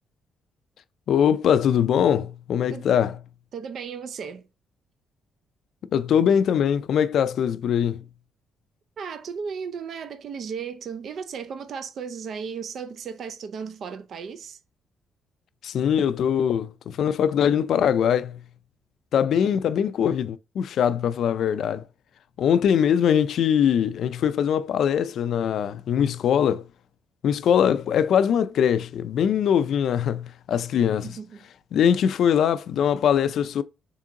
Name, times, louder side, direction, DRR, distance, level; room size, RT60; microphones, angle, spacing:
voice 1, 1.1-3.1 5.9-8.0 15.6-18.4 19.1-21.8 22.4-26.7 27.2-31.1 31.7-33.6, left 8 dB, 70° left, 0.4 m, -22 dB
voice 2, 3.5-4.5 9.0-14.6 31.0-31.5, right 6 dB, 60° right, 0.5 m, -35 dB
3.7 x 3.6 x 2.8 m
cardioid pair, 90°, 0 cm